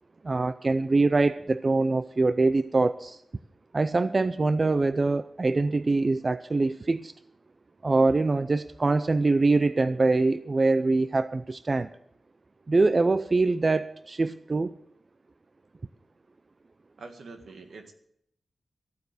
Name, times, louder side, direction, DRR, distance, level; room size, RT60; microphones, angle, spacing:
voice 1, 0.2-3.2 3.7-7.1 7.8-11.9 12.7-14.7, right 3 dB, 35° right, 13 dB, 0.4 m, -24 dB
voice 2, 17.0-17.9, right 3 dB, 75° right, 6 dB, 1.8 m, -45 dB
14.5 x 9.1 x 6.8 m, 0.74 s
wide cardioid pair, 130°, 0 cm